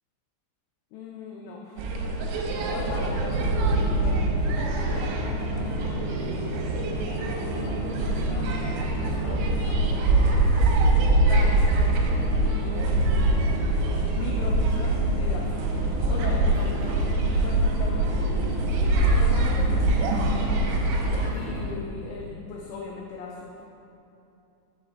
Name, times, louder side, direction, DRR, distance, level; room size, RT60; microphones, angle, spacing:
voice 1, 0.9-1.9 2.7-10.6 11.3-13.5 14.1-15.5 16.1-18.3 19.1-20.2 21.3-23.6, left 4 dB, 90° left, -1 dB, 2.4 m, -39 dB
sound 1, 1.8-21.3, right 2 dB, 85° right, 3.0 m, -24 dB
sound 2, 2.5-21.7, right 1 dB, 65° right, 2.8 m, -34 dB
6.5 x 6.4 x 4.4 m, 2.8 s
omnidirectional pair, 5.5 m